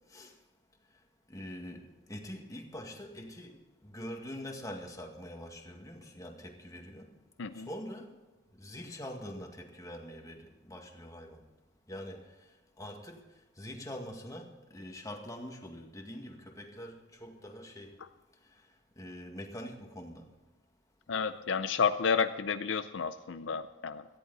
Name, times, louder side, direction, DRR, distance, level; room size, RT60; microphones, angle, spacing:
voice 1, 1.3-3.6 3.8-7.1 7.5-8.2 8.6-11.4 11.9-12.3 12.8-13.2 13.6-18.0 19.0-20.3, equal, 20° left, 1.9 m, -44 dB
voice 2, 21.1-24.0, left 6 dB, 70° left, 0.6 m, -31 dB
18.0 x 14.0 x 4.1 m
head